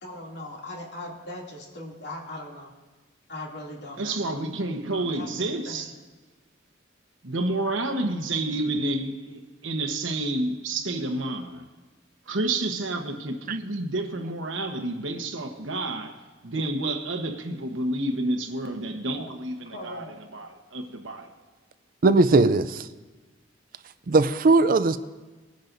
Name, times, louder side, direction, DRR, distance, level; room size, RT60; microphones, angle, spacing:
voice 1, 0.0-2.7 3.3-4.2 5.1-5.3 5.7-5.8 19.1-19.3 19.7-20.2, left 1 dB, 60° left, 2.7 m, -39 dB
voice 2, 3.9-5.9 7.2-11.7 12.3-21.4, right 2 dB, 85° right, 1.2 m, -30 dB
voice 3, 22.0-22.9 24.1-25.0, right 3 dB, 45° right, 0.4 m, -19 dB
22.0 x 10.5 x 2.7 m
head